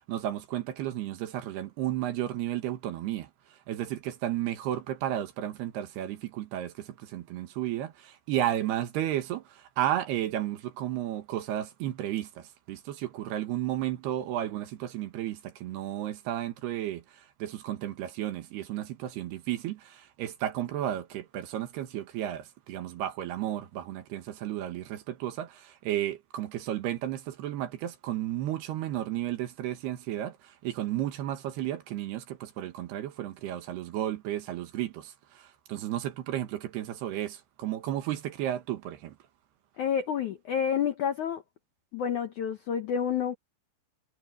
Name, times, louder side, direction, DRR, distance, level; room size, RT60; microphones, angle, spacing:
voice 1, 0.1-3.3 3.7-39.2, right 12 dB, 70° right, 3.2 m, -33 dB
voice 2, 39.8-41.4 41.9-43.4, left 8 dB, 75° left, 1.8 m, -29 dB
omnidirectional pair, 5.2 m